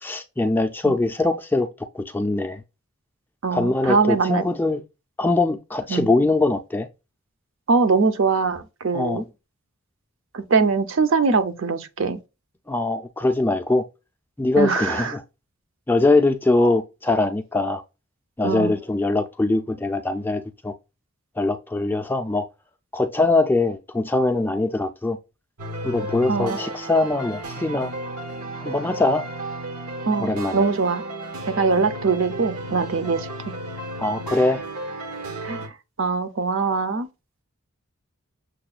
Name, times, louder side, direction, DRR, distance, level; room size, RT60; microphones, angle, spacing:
voice 1, 0.0-1.7 1.9-2.6 3.5-4.8 5.2-6.9 8.9-9.2 12.7-13.8 14.4-15.2 15.9-17.8 18.4-20.7 21.4-22.4 22.9-25.2 25.8-27.9 28.6-29.3 30.2-30.6 34.0-34.6, left 2 dB, 10° left, 0.3 m, -22 dB
voice 2, 3.4-4.4 5.9-6.1 7.7-9.2 10.3-12.2 14.6-15.1 18.4-18.7 26.3-26.6 30.1-31.0 31.5-33.3 35.4-35.7 36.0-37.1, right 4 dB, 60° right, 0.5 m, -22 dB
sound 1, 25.6-35.7, right 1 dB, 90° right, 0.9 m, -33 dB
6.6 x 2.2 x 2.3 m
head